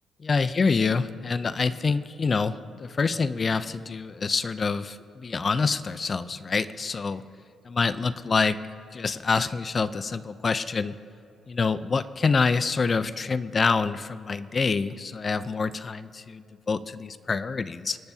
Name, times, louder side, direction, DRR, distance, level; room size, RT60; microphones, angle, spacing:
voice 1, 0.2-7.2 7.6-8.6 8.9-11.0 11.5-18.0, left 4 dB, 40° left, 14 dB, 0.5 m, -26 dB
26.0 x 12.0 x 2.8 m, 2.5 s
cardioid pair, 95°, 0 cm